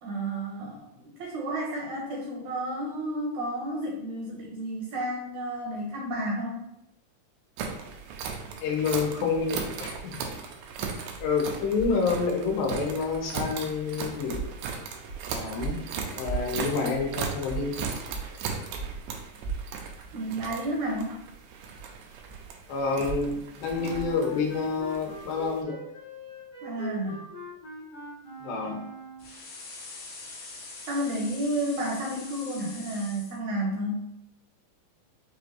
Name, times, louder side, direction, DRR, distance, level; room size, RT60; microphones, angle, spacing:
voice 1, 0.0-6.6 20.1-21.1 26.6-27.2 30.9-34.1, right 1 dB, 75° right, -2 dB, 1.8 m, -31 dB
sound 1, 7.6-25.6, right 5 dB, 90° right, 2.3 m, -36 dB
voice 2, 8.6-10.3 11.2-14.5 15.3-15.8 16.2-17.8 22.7-25.8 28.4-28.8, left 5 dB, 90° left, 0 dB, 2.6 m, -28 dB
Wind instrument woodwind instrument, 23.6-29.4, right 1 dB, 60° left, 1.1 m, -42 dB
sound 2, 29.2-33.4, left 3 dB, 75° left, 2.3 m, -43 dB
6.1 x 2.5 x 3.1 m, 0.79 s
omnidirectional pair, 4.0 m